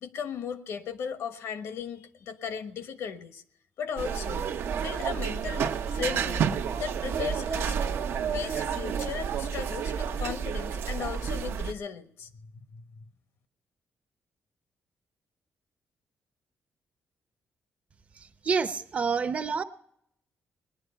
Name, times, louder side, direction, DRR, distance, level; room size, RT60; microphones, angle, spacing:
voice 1, 0.0-3.4 3.8-4.5 4.8-6.4 6.8-8.0 8.3-13.1, left 7 dB, 80° left, 9 dB, 1.2 m, -36 dB
sound 1, 4.0-11.7, right 7 dB, 65° right, 0.8 m, -30 dB
voice 2, 18.4-19.6, right 5 dB, 30° right, 10 dB, 0.8 m, -27 dB
20.0 x 10.5 x 5.6 m, 0.71 s
wide cardioid pair, 175°, 4 cm